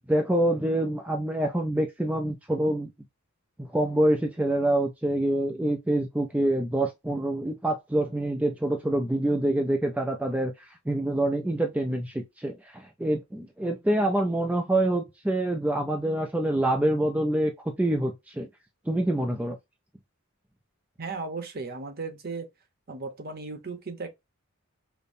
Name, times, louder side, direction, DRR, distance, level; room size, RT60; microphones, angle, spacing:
voice 1, 0.1-2.9 3.6-17.5 17.8-18.5 18.9-19.6, right 1 dB, 5° right, 0.3 m, -26 dB
voice 2, 21.0-22.5 22.9-24.1, right 4 dB, 45° right, 0.8 m, -36 dB
5.2 x 2.1 x 2.6 m
head